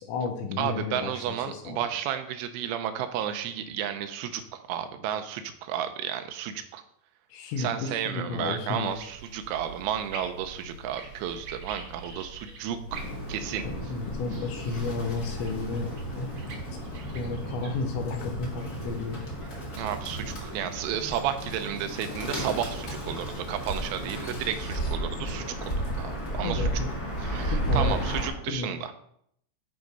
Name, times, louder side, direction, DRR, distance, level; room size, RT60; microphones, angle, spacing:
voice 1, 0.0-1.8 7.3-8.9 13.6-16.8 17.1-19.2 24.4-24.9 26.4-26.9 27.5-28.0 28.5-28.7, left 4 dB, 75° left, 3 dB, 3.2 m, -33 dB
voice 2, 0.6-6.8 7.6-12.8 13.3-13.6 16.9-17.1 19.8-26.7 27.2-28.9, right 10 dB, 85° right, 8 dB, 3.1 m, -32 dB
sound 1, 8.8-17.7, right 3 dB, 60° right, 1.7 m, -45 dB
Bird, 12.9-28.3, right 1 dB, 45° left, 1.2 m, -33 dB
10.5 x 4.8 x 5.4 m, 0.68 s
omnidirectional pair, 5.6 m